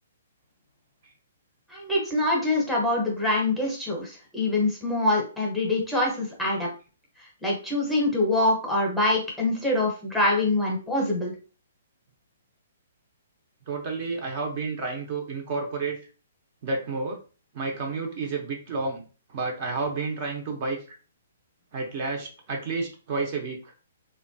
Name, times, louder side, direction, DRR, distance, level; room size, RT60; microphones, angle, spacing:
voice 1, 1.7-6.7 7.4-11.3, left 2 dB, ahead, -3 dB, 0.8 m, -25 dB
voice 2, 13.7-16.0 16.6-17.2 17.5-19.0 19.3-21.0 21.7-23.7, right 3 dB, 40° right, 2 dB, 0.7 m, -30 dB
3.2 x 2.2 x 2.6 m, 0.35 s
hypercardioid pair, 155°, 0 cm